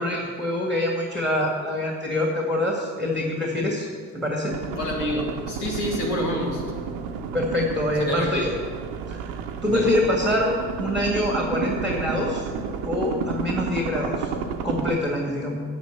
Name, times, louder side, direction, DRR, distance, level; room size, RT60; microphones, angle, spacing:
voice 1, 0.0-3.9 4.1-4.6 7.3-8.5 9.1-9.2 9.6-12.5 12.9-14.3 14.6-15.6, left 1 dB, ahead, 0 dB, 2.0 m, -25 dB
sound 1, 4.5-15.0, right 5 dB, 75° right, 0.8 m, -31 dB
voice 2, 4.7-6.6 8.0-8.4 9.7-9.9, left 1 dB, 80° left, -2 dB, 2.2 m, -28 dB
9.3 x 9.2 x 6.8 m, 2.1 s
figure-of-eight pair, 40°, 48 cm